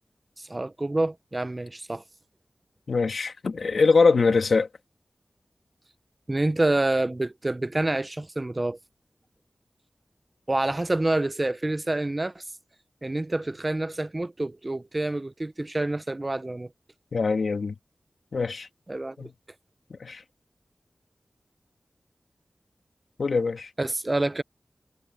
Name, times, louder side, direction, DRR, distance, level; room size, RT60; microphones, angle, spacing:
voice 1, 0.4-2.0 6.3-8.8 10.5-12.4 13.0-16.7 18.9-19.3 23.8-24.4, right 2 dB, 30° right, 0.8 m, -27 dB
voice 2, 2.9-4.7 17.1-17.8 18.3-18.7 19.2-19.3 19.9-20.2 23.2-23.7, left 4 dB, 90° left, 2.2 m, -23 dB
wide cardioid pair, 65°, 0 cm